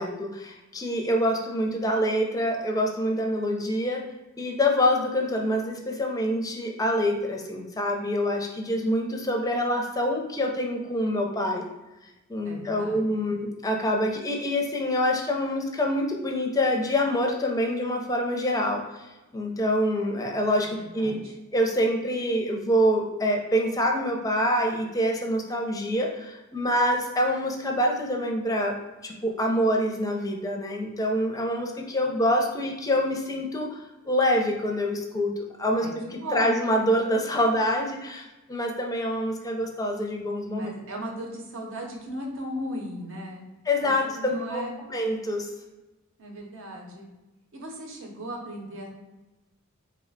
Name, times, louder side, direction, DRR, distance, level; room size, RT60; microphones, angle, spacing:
voice 1, 0.0-4.1 4.4-11.7 12.3-21.2 21.5-33.8 34.0-36.0 36.3-40.7 43.7-44.6 44.9-45.5, equal, 15° left, 1 dB, 0.4 m, -26 dB
voice 2, 12.4-13.0 20.8-21.3 35.7-36.6 40.5-43.4 43.8-44.8 46.2-47.1 47.5-48.9, equal, 65° right, 1 dB, 0.7 m, -37 dB
3.1 x 2.1 x 3.9 m, 1.1 s
head